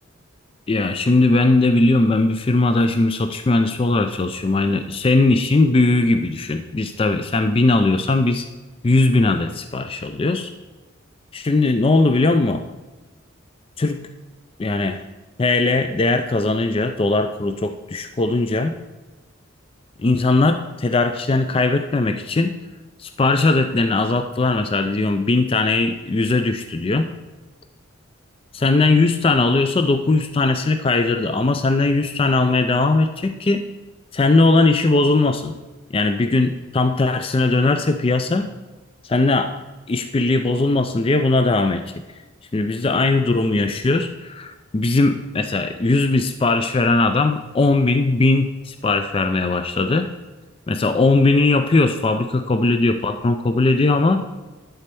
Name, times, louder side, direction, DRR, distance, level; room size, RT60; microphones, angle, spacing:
voice 1, 0.7-8.4 8.8-10.5 11.3-12.7 13.8-14.1 14.6-15.0 15.4-18.8 20.0-22.5 23.0-27.1 28.5-33.7 34.1-35.6 35.9-38.5 39.0-39.5 39.9-41.8 42.5-50.1 50.7-54.2, left 2 dB, 25° left, 8 dB, 0.4 m, -19 dB
11.5 x 4.3 x 6.8 m, 1.2 s
head